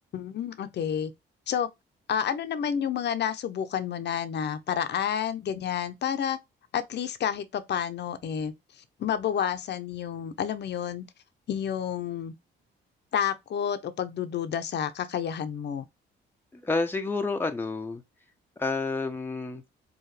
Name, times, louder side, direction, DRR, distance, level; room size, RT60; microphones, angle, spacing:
voice 1, 0.1-1.1 1.5-1.7 2.1-6.4 6.7-11.0 11.5-12.3 13.1-15.8, left 8 dB, 60° left, 0.8 m, -30 dB
voice 2, 16.5-18.0 18.6-19.6, left 3 dB, 10° left, 0.7 m, -29 dB
4.7 x 2.5 x 3.3 m
cardioid pair, 90°, 20 cm